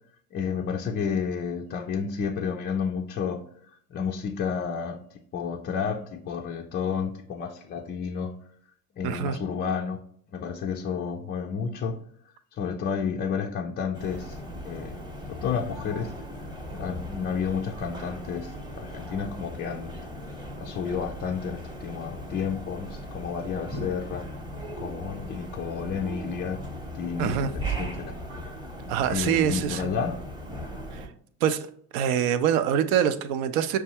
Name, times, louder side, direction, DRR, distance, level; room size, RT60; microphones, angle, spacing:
voice 1, 0.3-3.4 3.9-5.0 5.3-8.3 9.0-10.0 10.3-12.0 12.5-15.0 15.3-16.1 16.7-24.3 24.8-26.6 26.9-28.1 29.1-30.1, left 6 dB, 25° left, 0.3 m, -31 dB
voice 2, 9.0-9.4 27.2-27.5 28.9-30.0 30.9-31.1 31.4-31.7 31.9-33.8, right 9 dB, 65° right, 0.6 m, -25 dB
sound 1, 13.9-31.1, right 1 dB, 10° right, 0.8 m, -37 dB
5.8 x 2.3 x 2.8 m
hypercardioid pair, 80°, 46 cm